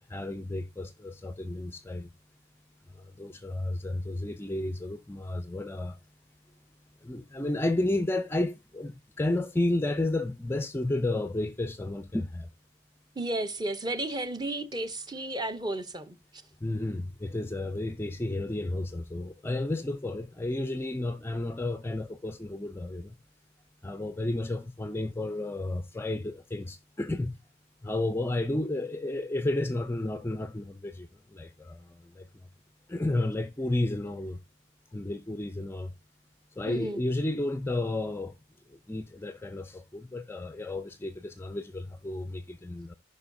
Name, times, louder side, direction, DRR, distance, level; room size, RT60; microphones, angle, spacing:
voice 1, 0.1-2.1 3.2-6.0 7.0-12.5 16.6-23.1 23.8-27.3 27.8-32.2 32.9-34.4 34.9-35.9 36.6-38.3 38.9-42.9, left 2 dB, 10° left, 0.4 m, -32 dB
voice 2, 13.2-16.4 36.7-37.0, right 1 dB, 20° right, 0.7 m, -33 dB
15.0 x 5.3 x 2.6 m
head